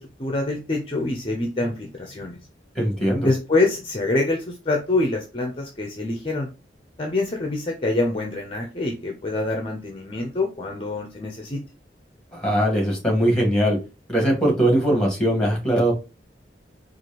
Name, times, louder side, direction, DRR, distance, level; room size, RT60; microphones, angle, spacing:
voice 1, 0.0-2.4 3.2-6.5 7.0-11.6, left 2 dB, 30° left, 2 dB, 0.6 m, -25 dB
voice 2, 2.7-3.3 12.3-13.8 14.1-15.9, right 1 dB, 5° left, 0 dB, 2.0 m, -20 dB
4.6 x 2.5 x 2.9 m, 0.30 s
head